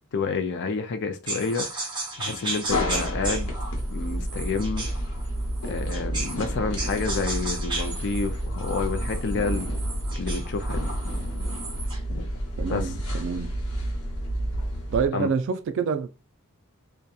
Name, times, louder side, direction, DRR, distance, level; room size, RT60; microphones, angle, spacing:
voice 1, 0.1-1.9 2.2-3.5 3.9-4.9 5.7-9.7 10.2-10.9 12.1-12.3 12.7-12.8 15.1-15.3, left 4 dB, 55° left, 0.4 m, -29 dB
sound 1, 1.3-6.5 6.8-12.1, right 2 dB, 20° right, 0.8 m, -35 dB
sound 2, 2.7-15.1, equal, 75° left, 0.9 m, -30 dB
voice 2, 12.6-13.5 14.9-16.1, right 6 dB, 55° right, 0.3 m, -27 dB
2.7 x 2.2 x 2.3 m
head